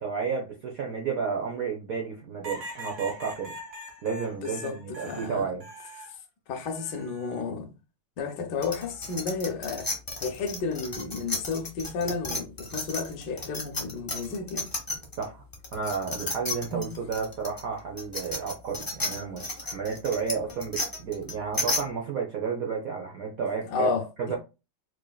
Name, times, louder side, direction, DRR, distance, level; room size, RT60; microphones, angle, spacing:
voice 1, 0.0-3.5 4.0-5.6 15.2-15.4 15.7-23.9 24.2-24.4, right 6 dB, 70° right, 0.8 m, -32 dB
sound 1, 2.4-6.1 6.6-7.4 8.8-9.2, right 1 dB, 45° right, 1.4 m, -42 dB
voice 2, 4.4-5.5 6.5-7.7 8.2-9.9 10.2-14.7 16.7-17.0 23.6-24.4, left 4 dB, 65° left, 1.1 m, -32 dB
sound 2, 8.6-15.2 15.5-21.8, left 2 dB, 35° left, 0.3 m, -32 dB
4.8 x 2.9 x 2.3 m
omnidirectional pair, 2.4 m